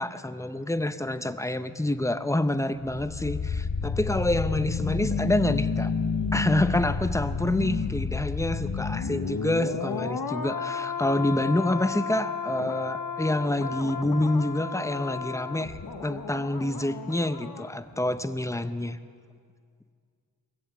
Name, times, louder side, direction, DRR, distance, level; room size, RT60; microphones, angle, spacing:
voice 1, 0.0-5.9 6.3-19.0, left 1 dB, 10° left, 10 dB, 0.7 m, -27 dB
sound 1, 2.7-17.7 18.0-18.2, left 5 dB, 65° left, 0.9 m, -31 dB
21.0 x 7.8 x 7.3 m, 2.1 s
cardioid pair, 40°, 39 cm